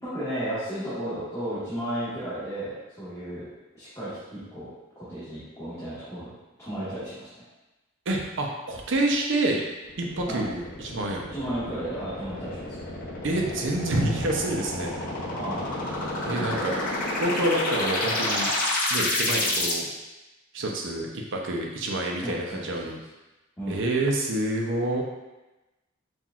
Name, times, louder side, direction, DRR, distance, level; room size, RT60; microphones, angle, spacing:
voice 1, 0.0-3.5 3.7-4.7 4.9-6.3 6.6-7.3 10.3-10.4 11.3-12.8 15.3-15.6 16.3-16.7 22.2-22.7 23.6-23.8, right 1 dB, 15° left, -15 dB, 1.4 m, -33 dB
voice 2, 8.1-9.6 10.0-11.2 13.2-14.9 16.2-16.7 17.2-18.5 18.9-19.9 20.5-23.0 23.7-25.0, right 1 dB, 60° right, 0 dB, 0.6 m, -27 dB
sound 1, 9.9-19.7, left 1 dB, 40° left, 0.7 m, -30 dB
5.7 x 2.5 x 2.4 m, 1.1 s
head